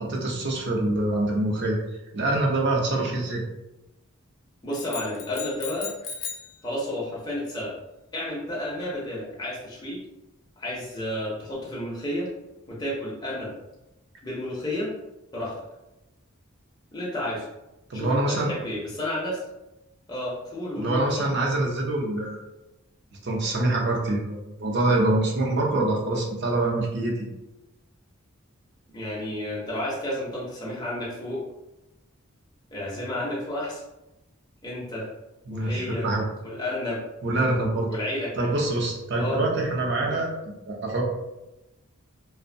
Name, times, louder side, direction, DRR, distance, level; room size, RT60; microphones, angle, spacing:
voice 1, 0.1-1.8 2.1-3.4 17.9-18.5 20.8-22.4 23.2-27.2 35.5-36.3 37.2-37.9 38.3-40.4 40.8-41.0, right 2 dB, 50° right, -1 dB, 0.5 m, -25 dB
voice 2, 4.6-5.9 6.6-7.7 8.1-10.0 10.6-12.3 12.7-13.5 14.2-14.9 15.3-15.5 16.9-17.5 17.9-19.4 20.1-21.2 28.9-31.5 32.7-33.8 34.6-35.1 35.5-36.0 36.4-37.0 37.9-38.5 39.1-39.4 40.0-40.2, left 1 dB, 20° left, -5 dB, 0.5 m, -31 dB
sound 1, 4.7-6.6, left 6 dB, 80° left, 0.5 m, -36 dB
2.5 x 2.1 x 2.5 m, 0.95 s
head